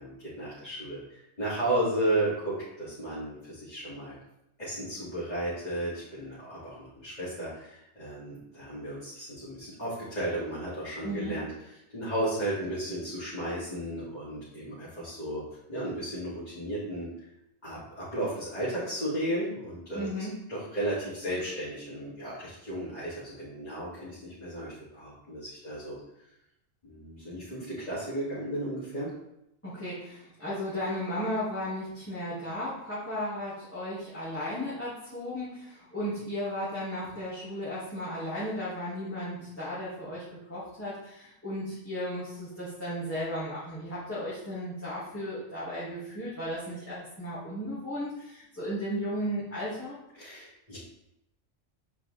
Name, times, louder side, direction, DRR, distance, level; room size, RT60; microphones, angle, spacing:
voice 1, 0.0-4.2 4.6-15.4 15.7-17.1 17.6-20.1 20.5-26.0 26.8-29.1 50.1-50.8, right 1 dB, 30° left, -11 dB, 2.7 m, -34 dB
voice 2, 11.0-11.3 20.0-20.3 29.6-50.0, equal, 10° left, -11 dB, 2.1 m, -35 dB
8.2 x 5.2 x 3.4 m, 0.83 s
omnidirectional pair, 1.4 m